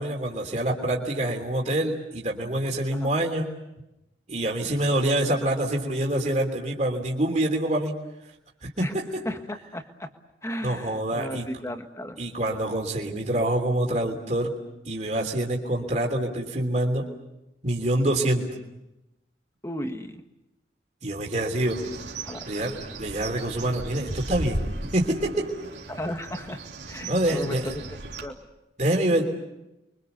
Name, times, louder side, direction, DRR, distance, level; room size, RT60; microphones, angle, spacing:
voice 1, 0.0-3.5 4.3-7.9 8.6-8.9 10.6-11.5 12.2-14.5 14.8-17.1 17.6-18.5 21.0-21.8 22.5-25.5 27.0-27.7 28.8-29.2, right 1 dB, 40° right, 0 dB, 3.3 m, -26 dB
voice 2, 8.8-10.1 10.4-12.2 19.6-20.2 22.3-22.6 25.9-26.6 26.9-27.8 28.2-28.3, equal, 15° left, 6 dB, 1.7 m, -35 dB
Bird, 21.6-28.2, right 2 dB, 80° right, 3.3 m, -36 dB
29.5 x 24.0 x 6.9 m, 0.94 s
head